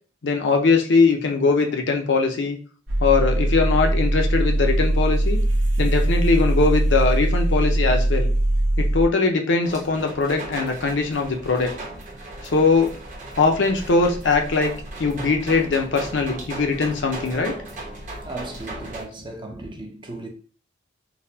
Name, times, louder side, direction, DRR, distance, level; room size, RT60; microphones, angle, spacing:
voice 1, 0.2-2.6 3.0-5.4 5.8-8.3 8.8-11.7 12.4-12.9 13.4-14.7 15.0-17.6, left 4 dB, 65° left, 0.6 m, -21 dB
sound 1, 2.9-9.1, right 1 dB, 75° right, 0.9 m, -21 dB
sound 2, 9.6-19.0, right 1 dB, 40° right, 1.0 m, -36 dB
voice 2, 18.2-20.3, right 2 dB, 25° right, 0.5 m, -36 dB
3.9 x 2.1 x 2.7 m
head